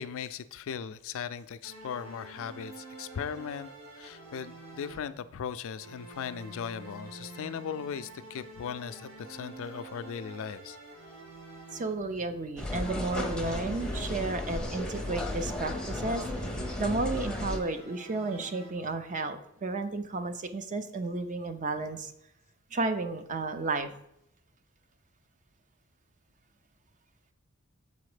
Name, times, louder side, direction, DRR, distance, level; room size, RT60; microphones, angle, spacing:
voice 1, 0.0-3.7 4.0-10.8, left 7 dB, 65° left, 13 dB, 0.4 m, -38 dB
sound 1, 1.6-5.4 5.8-12.2 12.6-19.1, right 2 dB, 60° right, 1.8 m, -47 dB
voice 2, 11.7-16.5 16.8-22.1 22.7-24.0, right 2 dB, 35° right, 8 dB, 0.6 m, -33 dB
sound 2, 12.6-17.6, left 1 dB, 5° left, 0.7 m, -34 dB
7.0 x 4.1 x 4.9 m, 0.79 s
head